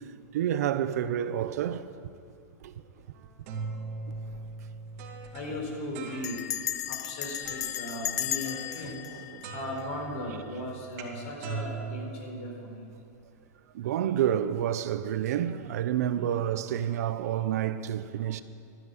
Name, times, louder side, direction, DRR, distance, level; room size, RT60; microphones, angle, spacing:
voice 1, 0.3-1.9 2.6-2.7 8.8-9.4 13.7-18.4, right 10 dB, 70° right, 0.7 m, -29 dB
sound 1, 3.1-6.7 7.4-7.9 8.4-9.2 9.4-12.9, right 4 dB, 45° right, 2.4 m, -41 dB
Bell, 4.1-4.5 4.7-4.8 5.1-5.4 6.2-10.3, left 12 dB, 80° left, 0.6 m, -35 dB
voice 2, 5.3-6.4 6.9-9.0 9.5-12.9, left 1 dB, 50° left, 4.6 m, -37 dB
13.0 x 10.0 x 9.7 m
supercardioid pair, 160°, 9 cm